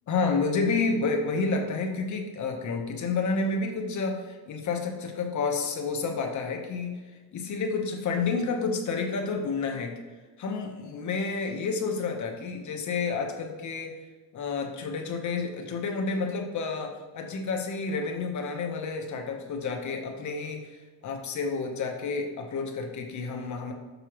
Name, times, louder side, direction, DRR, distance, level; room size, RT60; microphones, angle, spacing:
voice 1, 0.1-7.0 7.3-10.0 10.4-14.0 14.3-20.8 21.0-23.7, left 4 dB, 55° left, 3 dB, 1.1 m, -30 dB
6.6 x 6.1 x 3.0 m, 1.3 s
cardioid pair, 125°, 35 cm